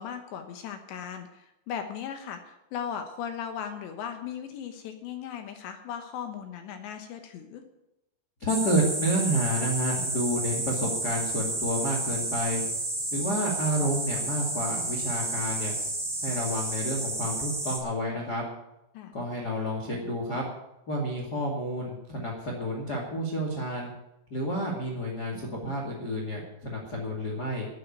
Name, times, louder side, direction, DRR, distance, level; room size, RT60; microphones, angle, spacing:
voice 1, 0.0-7.6 18.9-19.1 25.3-25.5, left 8 dB, 75° left, 6 dB, 3.1 m, -37 dB
voice 2, 8.4-12.6 13.1-15.7 16.2-18.4 19.1-20.4 20.9-23.9 24.3-27.7, equal, 35° left, -1 dB, 1.7 m, -30 dB
sound 1, 8.5-17.8, right 2 dB, 20° right, 2.3 m, -31 dB
12.0 x 8.5 x 9.4 m, 0.89 s
omnidirectional pair, 5.6 m